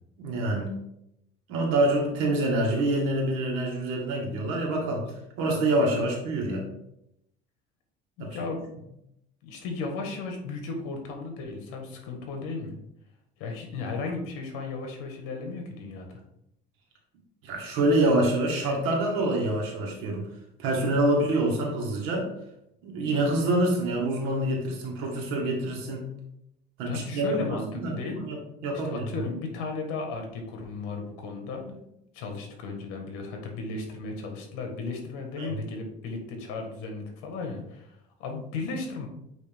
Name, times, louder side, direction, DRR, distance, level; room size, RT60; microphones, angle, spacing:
voice 1, 0.2-0.8 1.5-5.1 5.4-6.7 8.2-8.3 17.4-20.2 20.6-22.3 22.8-26.0 26.8-27.4 27.8-29.0 35.4-35.5, right 1 dB, 80° right, -1 dB, 2.0 m, -26 dB
voice 2, 8.2-8.6 9.4-12.7 13.4-16.2 26.9-28.2 28.7-31.8 32.1-39.1, left 3 dB, 80° left, 3 dB, 1.6 m, -35 dB
8.3 x 3.2 x 3.6 m, 0.80 s
cardioid pair, 160°, 21 cm